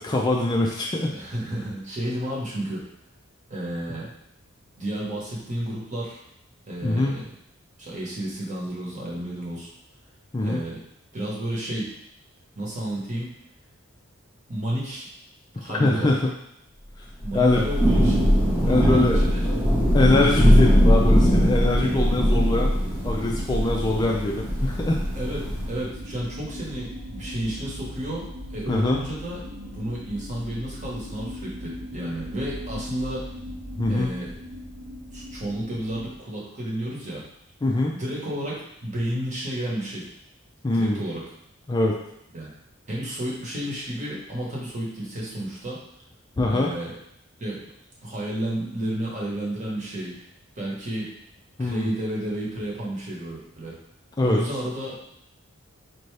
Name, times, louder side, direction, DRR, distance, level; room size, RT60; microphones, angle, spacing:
voice 1, 0.0-1.1 6.8-7.2 10.3-10.6 15.6-16.2 17.3-17.6 18.6-19.2 19.9-22.8 23.0-25.0 28.7-29.0 33.8-34.1 37.6-37.9 40.6-41.0 41.7-42.0 46.4-46.7 51.6-51.9 54.2-54.4, left 2 dB, 20° left, -1 dB, 0.3 m, -23 dB
voice 2, 1.1-2.9 3.5-4.1 4.8-6.2 6.6-7.3 7.8-9.7 10.4-10.8 11.1-11.9 12.6-13.3 14.5-15.1 15.6-16.2 17.2-18.3 18.5-19.5 25.1-29.4 29.7-33.3 33.9-34.3 35.1-37.2 37.9-40.1 40.7-41.2 42.3-42.6 42.9-45.8 46.5-46.9 47.4-47.6 48.0-50.2 50.6-51.1 51.6-53.8 54.2-54.9, right 1 dB, 35° right, -4 dB, 1.1 m, -31 dB
Thunder / Rain, 17.2-25.8, equal, 10° right, 0.9 m, -20 dB
sound 1, 17.7-36.2, equal, 80° right, 1.2 m, -38 dB
4.4 x 2.7 x 3.3 m, 0.75 s
head